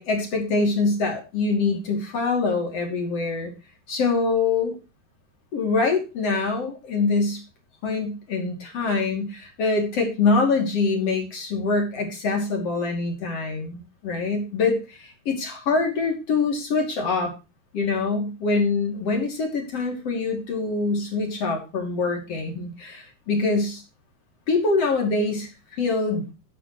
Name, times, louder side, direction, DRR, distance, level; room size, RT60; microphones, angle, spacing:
voice 1, 0.0-3.5 3.9-4.8 5.5-7.4 7.8-17.3 17.7-23.8 24.5-26.3, left 3 dB, 40° left, 3 dB, 3.3 m, -24 dB
12.0 x 11.5 x 3.1 m, 0.29 s
omnidirectional pair, 4.6 m